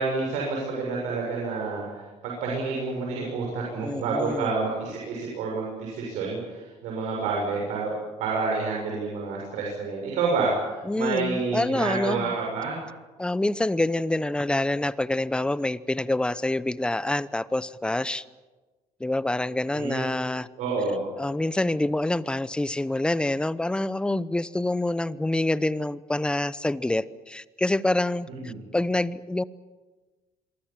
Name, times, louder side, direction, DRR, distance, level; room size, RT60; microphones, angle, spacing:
voice 1, 0.0-12.8 19.7-20.0 20.6-21.0 28.3-28.6, right 4 dB, 85° right, -2 dB, 7.0 m, -29 dB
voice 2, 3.8-4.5 10.9-12.3 13.2-18.2 19.0-20.5 21.2-29.4, left 1 dB, 10° left, 17 dB, 0.8 m, -26 dB
26.5 x 23.5 x 7.5 m, 1.3 s
cardioid pair, 120°, 12 cm